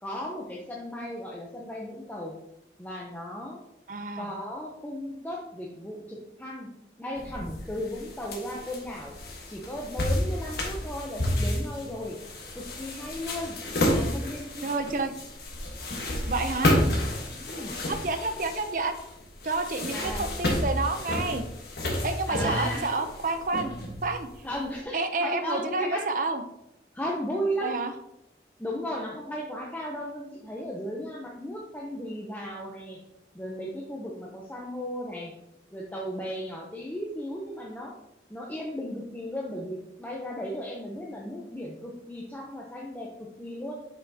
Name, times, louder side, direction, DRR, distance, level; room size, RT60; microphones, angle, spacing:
voice 1, 0.0-2.4 2.8-3.6 4.2-6.7 7.0-9.1 9.5-12.2 12.5-13.6 13.9-15.0 17.5-17.8 19.8-20.3 22.3-23.1 24.4-26.0 26.9-27.8 28.6-33.0 33.3-35.3 35.7-38.0 38.3-43.7, equal, 10° left, -3 dB, 0.6 m, -35 dB
voice 2, 3.9-4.3 14.6-15.1 16.3-16.8 17.9-19.0 19.4-21.4 22.0-23.7 24.0-24.3 24.9-26.4 27.6-27.9, right 3 dB, 45° right, 8 dB, 0.6 m, -29 dB
sound 1, 7.2-24.6, left 1 dB, 65° left, 1.3 m, -31 dB
6.9 x 5.6 x 2.8 m, 0.86 s
head